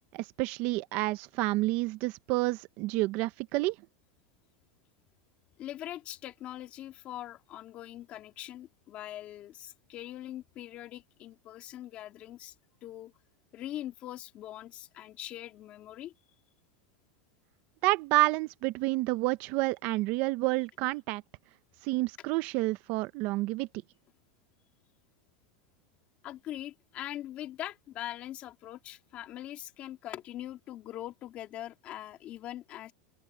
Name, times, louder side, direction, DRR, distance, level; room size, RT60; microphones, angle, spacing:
voice 1, 0.1-3.8 17.8-21.2 21.8-23.7, right 20 dB, 45° right, 0.7 m, -29 dB
voice 2, 5.6-12.5 12.8-13.1 13.5-16.1 26.2-32.9, left 13 dB, 35° left, 2.5 m, -42 dB
open air
supercardioid pair, 155°, 4 cm